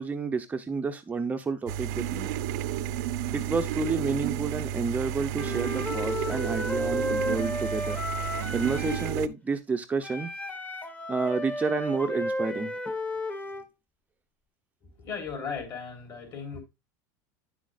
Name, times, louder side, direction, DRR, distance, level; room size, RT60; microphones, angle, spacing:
voice 1, 0.0-2.3 3.3-10.3 11.1-12.8, right 4 dB, 15° right, 0.6 m, -30 dB
sound 1, 1.7-9.3, right 11 dB, 75° right, 0.6 m, -32 dB
Wind instrument woodwind instrument, 5.4-9.2 10.0-13.7, left 1 dB, 15° left, 1.0 m, -33 dB
voice 2, 14.8-16.6, left 5 dB, 45° left, 3.4 m, -37 dB
9.8 x 6.2 x 2.4 m
supercardioid pair, 125°, 9 cm